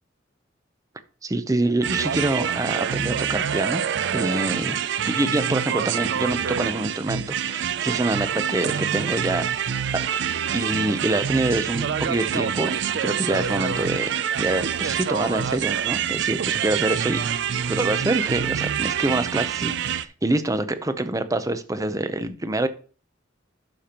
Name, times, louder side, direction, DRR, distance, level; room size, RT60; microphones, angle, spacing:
voice 1, 1.2-3.8 4.1-9.5 9.9-10.0 10.5-14.1 14.4-17.2 17.7-22.7, right 2 dB, 20° right, 11 dB, 0.6 m, -26 dB
sound 1, 1.8-20.1, right 8 dB, 60° right, 0.4 m, -26 dB
11.5 x 5.1 x 2.9 m, 0.39 s
head